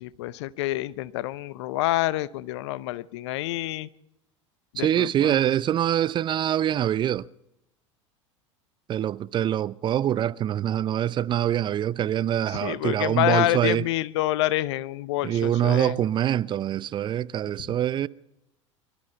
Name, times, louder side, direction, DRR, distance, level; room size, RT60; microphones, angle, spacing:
voice 1, 0.0-3.9 4.7-5.4 12.5-16.0, left 16 dB, 60° left, 0.7 m, -27 dB
voice 2, 4.8-7.3 8.9-13.9 15.2-18.1, right 11 dB, 30° right, 0.5 m, -24 dB
24.0 x 13.0 x 4.5 m
figure-of-eight pair, 80°, 16 cm